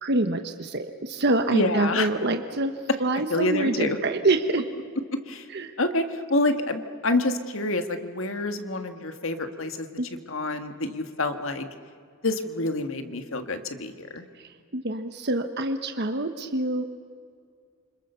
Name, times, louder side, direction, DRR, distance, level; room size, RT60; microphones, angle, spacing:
voice 1, 0.0-2.7 3.0-4.7 5.5-5.7 10.0-10.1 14.4-17.0, right 2 dB, 55° right, 7 dB, 1.2 m, -26 dB
voice 2, 1.5-2.1 3.3-4.0 5.3-5.5 5.8-9.9 10.3-11.7 12.2-14.2, left 2 dB, 65° left, 7 dB, 1.8 m, -27 dB
29.0 x 26.0 x 6.9 m, 2.2 s
head